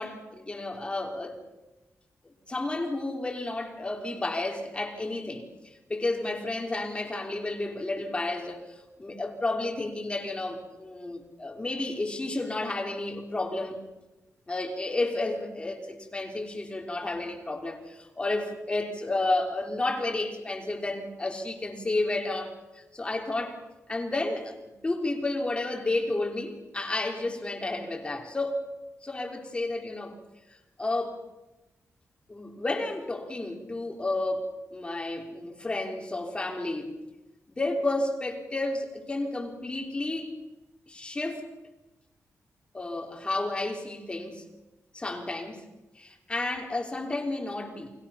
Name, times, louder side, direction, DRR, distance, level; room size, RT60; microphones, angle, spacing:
voice 1, 0.0-1.4 2.5-5.4 5.9-13.8 14.5-23.6 23.9-24.6 24.8-28.7 29.0-30.2 30.5-31.2 32.3-37.0 37.6-40.4 40.9-41.5 42.7-44.4 44.9-45.7 46.0-47.9, left 2 dB, 20° left, 2 dB, 3.6 m, -31 dB
29.5 x 21.5 x 5.8 m, 1.0 s
wide cardioid pair, 130°, 5 cm